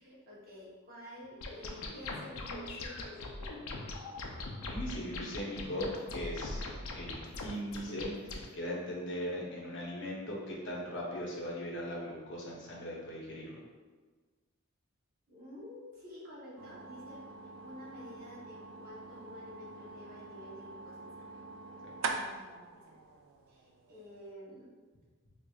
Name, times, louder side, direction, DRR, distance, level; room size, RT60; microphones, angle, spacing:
voice 1, 0.0-3.7 15.3-17.2 17.6-21.4 22.7-22.9 23.5-24.7, left 1 dB, 40° right, -6 dB, 0.9 m, -50 dB
sound 1, 1.4-8.4, left 2 dB, 75° left, 0.4 m, -41 dB
voice 2, 4.6-6.7 6.9-13.6 21.8-21.9, equal, 55° left, -4 dB, 0.8 m, -39 dB
sound 2, 16.6-24.3, right 3 dB, 65° right, 0.3 m, -44 dB
4.7 x 2.4 x 2.3 m, 1.4 s
head